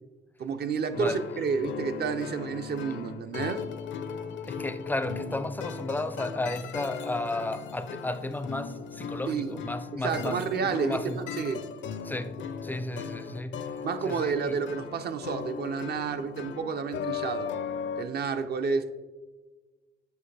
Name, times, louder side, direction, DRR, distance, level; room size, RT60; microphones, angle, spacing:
voice 1, 0.4-3.6 9.3-9.5 10.0-11.6 13.8-17.5 18.0-18.9, right 5 dB, 55° right, 0.6 m, -30 dB
sound 1, 0.9-18.1, left 6 dB, 70° left, 0.5 m, -37 dB
voice 2, 4.4-11.2 12.0-13.8 14.0-14.6, left 2 dB, 10° left, 0.4 m, -34 dB
8.1 x 5.1 x 3.3 m
cardioid pair, 90°, 20 cm